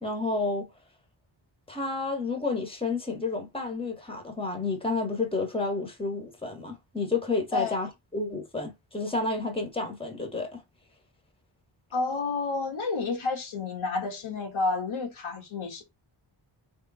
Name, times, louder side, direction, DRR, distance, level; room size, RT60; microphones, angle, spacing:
voice 1, 0.0-0.7 1.7-10.6, left 3 dB, 10° left, 1.4 m, -30 dB
voice 2, 11.9-15.8, left 3 dB, 85° left, 1.8 m, -30 dB
3.6 x 3.5 x 4.2 m
wide cardioid pair, 120°, 48 cm